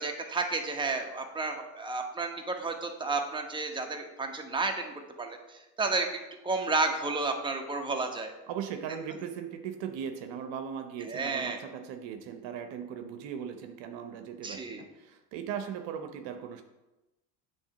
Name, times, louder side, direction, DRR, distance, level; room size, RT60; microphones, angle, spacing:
voice 1, 0.0-6.1 6.4-8.3 11.1-11.6 14.4-14.8, right 3 dB, 10° right, 3 dB, 0.9 m, -32 dB
voice 2, 8.5-16.6, right 8 dB, 60° right, 7 dB, 0.8 m, -38 dB
7.2 x 3.2 x 5.8 m, 1.0 s
hypercardioid pair, 75°, 49 cm